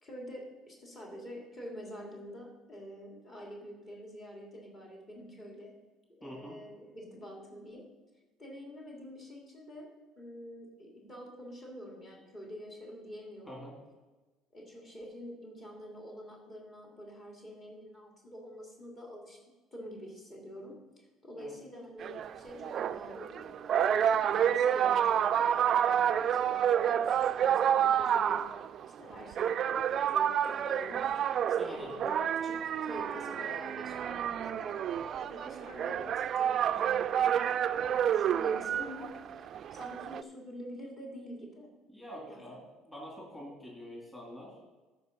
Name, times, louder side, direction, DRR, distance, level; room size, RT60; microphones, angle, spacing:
voice 1, 0.0-5.7 6.2-7.8 8.4-9.9 10.2-13.6 14.5-19.4 19.7-28.4 28.8-32.1 32.4-34.8 35.2-39.1 39.4-41.7 42.2-42.5, equal, 35° left, -2 dB, 2.9 m, -46 dB
voice 2, 6.2-6.6 13.4-13.8 21.3-21.5 31.6-32.0 41.9-44.6, equal, 10° left, -3 dB, 2.7 m, -46 dB
sound 1, 22.0-40.2, right 9 dB, 45° right, 0.3 m, -29 dB
13.0 x 5.2 x 5.3 m, 1.2 s
cardioid pair, 110°, 0 cm